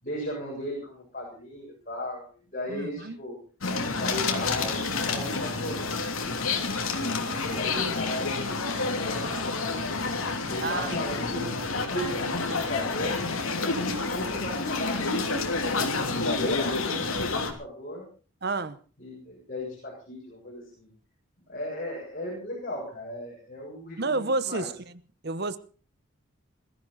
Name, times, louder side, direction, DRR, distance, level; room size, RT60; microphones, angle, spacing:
voice 1, 0.0-3.4 4.0-5.9 6.7-8.4 8.6-9.9 10.5-13.2 14.1-18.1 19.0-20.9 21.5-24.7, left 1 dB, 40° left, 7.4 m, -37 dB
voice 2, 2.7-3.2 10.6-11.0 18.4-18.8 24.0-24.7 25.2-25.6, right 3 dB, 50° right, 1.0 m, -29 dB
sound 1, 3.6-17.5, left 3 dB, 75° left, 3.1 m, -29 dB
22.0 x 14.5 x 4.2 m
head